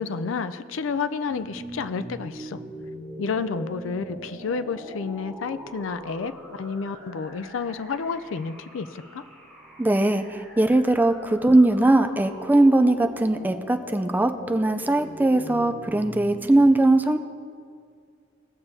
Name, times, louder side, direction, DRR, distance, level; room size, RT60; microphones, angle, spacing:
voice 1, 0.0-2.6 3.2-9.2, left 5 dB, 85° left, 11 dB, 0.4 m, -30 dB
sound 1, 1.3-16.7, right 1 dB, 10° left, 2.6 m, -41 dB
voice 2, 9.8-17.2, right 2 dB, 10° right, 7 dB, 0.3 m, -20 dB
17.5 x 7.1 x 2.7 m, 2.2 s
head